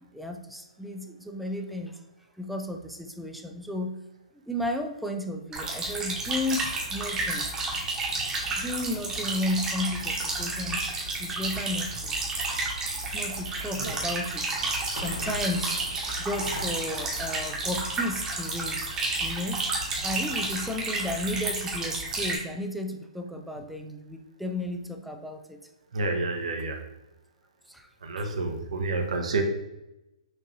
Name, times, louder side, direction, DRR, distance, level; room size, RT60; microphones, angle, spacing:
voice 1, 0.1-2.0 2.4-4.0 4.4-7.5 8.4-10.8 11.2-12.2 13.1-15.8 16.2-18.8 19.2-19.7 20.0-25.6 27.7-27.9 28.2-28.3, left 1 dB, ahead, 3 dB, 0.3 m, -33 dB
sound 1, 5.5-22.4, right 2 dB, 15° right, 1.0 m, -31 dB
sound 2, 6.7-8.1 14.9-18.8, left 2 dB, 75° left, 1.1 m, -43 dB
voice 2, 25.9-26.8 28.0-29.4, right 3 dB, 65° right, 3 dB, 0.8 m, -29 dB
6.1 x 2.6 x 2.6 m, 0.95 s
hypercardioid pair, 130°, 4 cm